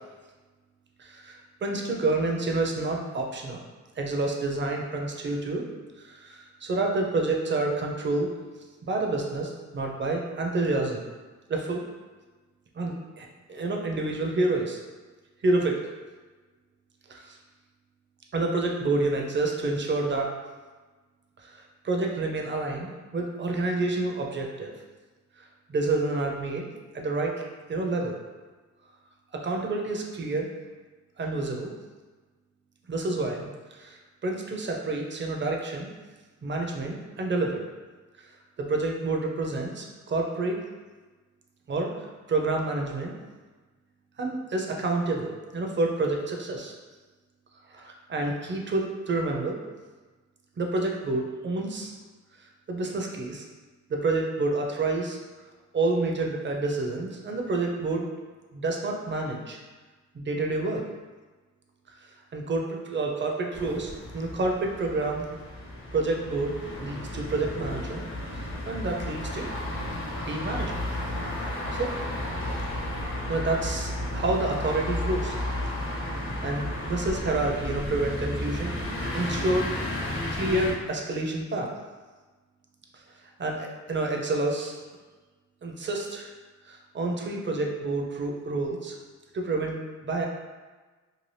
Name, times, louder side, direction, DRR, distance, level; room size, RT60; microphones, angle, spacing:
voice 1, 1.0-3.6 4.0-5.6 6.0-8.3 8.8-11.1 11.5-11.8 12.8-14.8 15.4-15.7 17.1-17.4 18.3-20.3 21.4-21.5 21.8-24.7 25.7-26.7 26.9-27.3 27.7-28.2 29.4-30.5 31.2-31.7 32.9-33.4 33.7-35.9 36.4-37.6 38.6-40.6 41.7-41.9 42.3-43.1 44.2-46.7 47.7-49.6 50.6-51.9 52.7-53.4 53.9-55.2 55.7-58.1 58.5-59.6 60.1-60.8 62.3-65.3 65.9-68.0 68.3-69.5 69.9-70.0 70.3-70.8 71.7-71.9 73.3-75.3 76.4-78.8 79.1-79.7 80.0-81.7 83.4-84.7 85.6-86.3 86.7-88.9 89.3-90.3, right 2 dB, 40° right, 1 dB, 0.6 m, -28 dB
sound 1, 63.5-80.7, left 1 dB, 45° left, 0.8 m, -33 dB
2.7 x 2.4 x 3.2 m, 1.3 s
cardioid pair, 80°, 30 cm